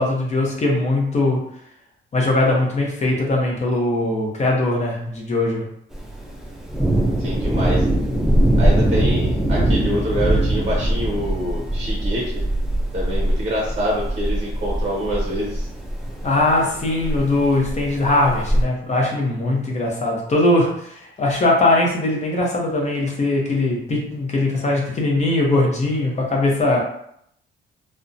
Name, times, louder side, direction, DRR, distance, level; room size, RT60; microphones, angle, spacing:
voice 1, 0.0-1.4 2.1-5.7 16.2-26.8, left 2 dB, 35° left, -1 dB, 0.7 m, -20 dB
Thunder, 5.9-18.6, right 1 dB, ahead, 0.4 m, -22 dB
voice 2, 7.2-7.9 8.6-12.3 12.9-15.7, equal, 30° right, -4 dB, 0.7 m, -26 dB
2.6 x 2.2 x 2.5 m, 0.71 s
cardioid pair, 135°, 21 cm